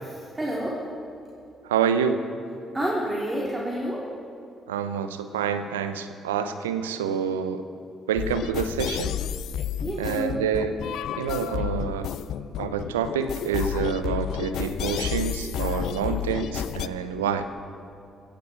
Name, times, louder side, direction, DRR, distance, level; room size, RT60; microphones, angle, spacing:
voice 1, 0.1-0.9 2.7-4.0 9.8-10.4, equal, 20° right, -4 dB, 3.7 m, -29 dB
voice 2, 1.6-2.3 4.7-7.6 8.1-9.2 10.0-10.8 11.2-12.1 12.6-17.4, right 7 dB, 85° right, 10 dB, 0.7 m, -27 dB
sound 1, 8.2-16.9, left 10 dB, 65° left, 0.4 m, -31 dB
17.0 x 16.5 x 4.6 m, 2.6 s
hypercardioid pair, 45°, 0 cm